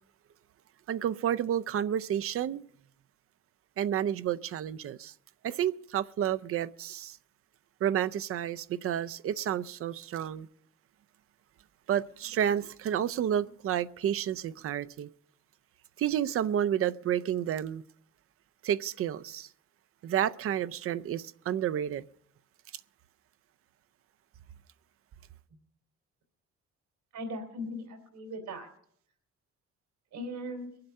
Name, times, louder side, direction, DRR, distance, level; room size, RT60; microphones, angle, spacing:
voice 1, 0.9-2.6 3.8-5.1 5.4-7.2 7.8-10.5 11.9-15.1 16.0-17.8 18.6-19.5 20.0-22.0, right 10 dB, 50° right, 0.5 m, -30 dB
voice 2, 27.1-28.7 30.1-30.7, equal, 85° right, 3.4 m, -38 dB
22.5 x 7.8 x 5.4 m
cardioid pair, 175°, 29 cm